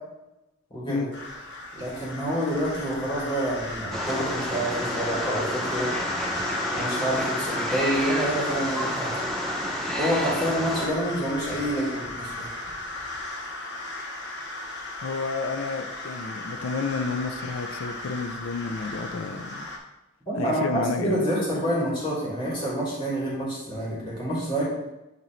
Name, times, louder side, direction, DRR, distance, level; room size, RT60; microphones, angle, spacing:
voice 1, 0.7-1.1 1.7-5.9 6.7-9.2 10.0-12.5 20.3-24.6, equal, 25° left, -7 dB, 2.7 m, -28 dB
sound 1, 1.1-19.8, left 2 dB, 55° left, 1.0 m, -34 dB
Wild animals, 3.9-10.9, equal, ahead, 0.8 m, -31 dB
voice 2, 15.0-19.7 20.4-21.2, left 4 dB, 80° left, 8 dB, 0.5 m, -31 dB
10.5 x 4.0 x 3.2 m, 0.96 s
head